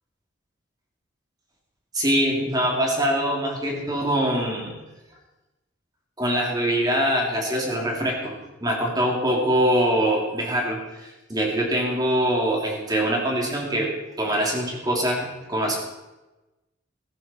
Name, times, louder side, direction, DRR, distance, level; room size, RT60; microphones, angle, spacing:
voice 1, 1.9-4.8 6.2-13.9 14.2-15.8, equal, 20° right, -1 dB, 3.2 m, -23 dB
16.0 x 14.0 x 4.5 m, 1.0 s
head